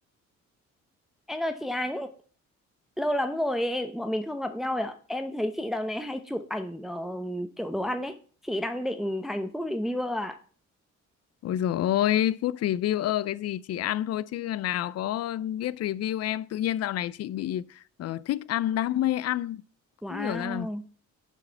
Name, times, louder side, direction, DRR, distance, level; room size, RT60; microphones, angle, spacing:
voice 1, 1.3-2.1 3.0-8.1 8.4-10.4 20.0-20.8, left 1 dB, ahead, 0.8 m, -31 dB
voice 2, 11.4-19.6 20.1-20.7, left 12 dB, 55° left, 0.5 m, -28 dB
6.9 x 4.8 x 6.9 m
cardioid pair, 90°, 30 cm